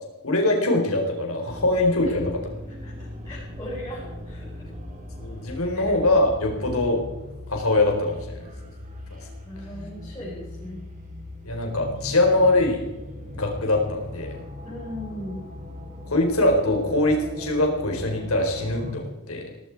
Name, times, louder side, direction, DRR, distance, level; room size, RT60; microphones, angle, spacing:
voice 1, 0.2-2.4 5.2-7.0 7.5-8.4 9.1-9.2 11.4-12.8 13.3-14.3 16.1-19.4, left 2 dB, 70° left, 2 dB, 4.5 m, -22 dB
sound 1, 1.5-18.9, left 1 dB, 35° right, 3.2 m, -39 dB
voice 2, 2.7-4.6 5.7-5.9 9.4-10.9 12.1-12.2 14.6-15.4, equal, 15° left, -8 dB, 5.3 m, -38 dB
17.5 x 15.5 x 4.8 m, 1.1 s
head